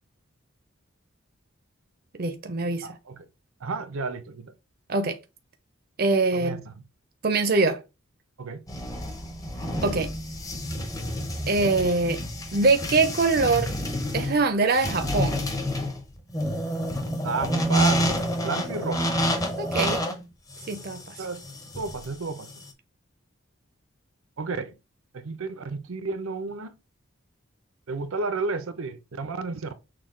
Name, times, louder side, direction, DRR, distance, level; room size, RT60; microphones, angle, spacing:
voice 1, 2.2-2.9 4.9-5.2 6.0-6.6 7.2-7.8 9.8-10.1 11.5-12.2 12.5-13.7 14.1-15.4 19.6-20.1 20.7-21.0, right 3 dB, 45° right, 0.5 m, -23 dB
voice 2, 2.8-3.3 3.6-4.5 6.3-6.7 8.4-8.6 17.2-19.2 21.2-21.5 21.7-22.5 24.4-24.8 25.1-26.8 27.9-29.7, right 4 dB, 85° right, 0.7 m, -32 dB
sound 1, 8.7-22.7, equal, 15° left, 0.7 m, -29 dB
6.2 x 2.3 x 3.7 m
head